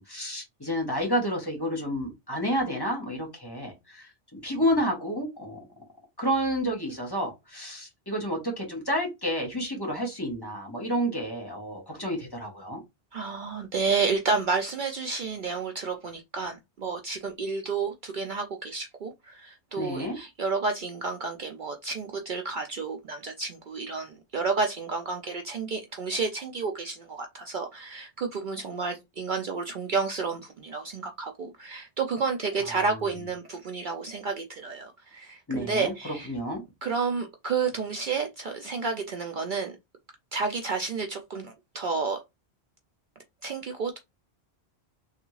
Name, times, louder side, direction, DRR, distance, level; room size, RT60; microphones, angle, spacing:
voice 1, 0.0-5.6 6.2-12.8 19.8-20.2 35.5-36.6, equal, 20° left, 1.2 m, -30 dB
voice 2, 13.1-36.3 36.8-39.7 40.3-42.2 43.4-44.0, right 4 dB, 55° right, 0.6 m, -31 dB
3.4 x 2.4 x 3.1 m
omnidirectional pair, 1.1 m